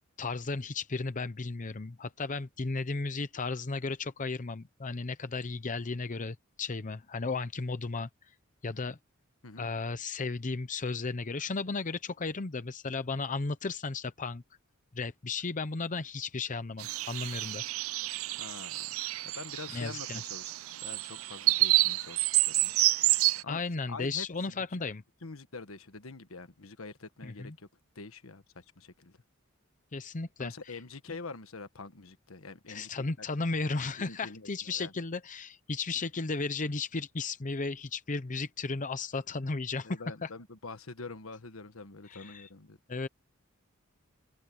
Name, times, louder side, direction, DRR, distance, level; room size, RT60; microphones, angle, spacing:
voice 1, 0.2-8.1 8.6-9.0 9.6-14.4 14.9-17.6 19.7-20.2 23.5-25.0 27.2-27.6 29.9-30.5 32.7-40.3 42.1-42.5 42.9-43.1, left 3 dB, 40° left, 0.8 m, -34 dB
sound 1, 16.8-23.4, right 18 dB, 80° right, 0.5 m, -29 dB
voice 2, 18.4-18.9 19.2-22.7 23.4-23.6 23.9-24.8 25.2-27.7 27.9-29.2 30.4-33.3 34.0-34.9 39.8-42.8, left 3 dB, 75° left, 1.4 m, -45 dB
open air
head